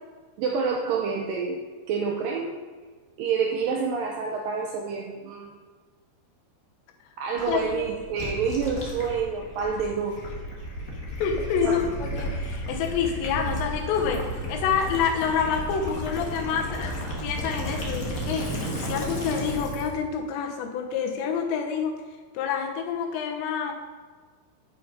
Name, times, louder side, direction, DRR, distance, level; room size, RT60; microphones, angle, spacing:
voice 1, 0.4-1.6 1.9-2.6 3.2-5.5 7.2-10.2 11.6-11.8, right 5 dB, 80° right, 1 dB, 2.0 m, -28 dB
Gurgling / Liquid, 7.4-20.0, equal, 65° left, 0.8 m, -33 dB
voice 2, 7.5-7.9 11.2-22.0 22.3-23.7, left 7 dB, 85° left, 4 dB, 3.4 m, -28 dB
8.6 x 8.0 x 5.1 m, 1.5 s
omnidirectional pair, 4.9 m